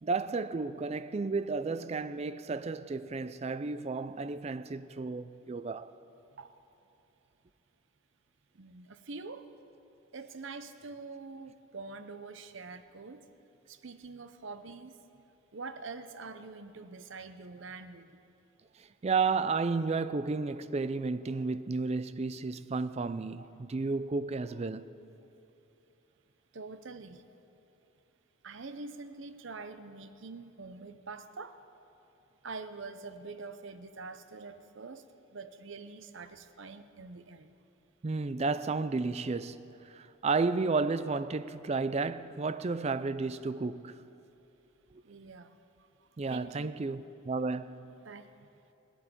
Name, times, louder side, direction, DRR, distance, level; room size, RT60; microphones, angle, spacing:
voice 1, 0.0-5.9 18.8-24.9 38.0-44.0 44.9-45.0 46.2-48.0, right 4 dB, 30° right, 0.4 m, -32 dB
voice 2, 8.5-9.5 10.1-13.2 13.7-15.0 15.5-18.2 23.4-23.5 26.5-27.2 28.4-31.6 32.4-35.0 35.3-37.5 45.0-45.6 46.3-46.7 48.0-48.3, right 4 dB, 60° right, 0.7 m, -45 dB
18.5 x 8.0 x 8.9 m
head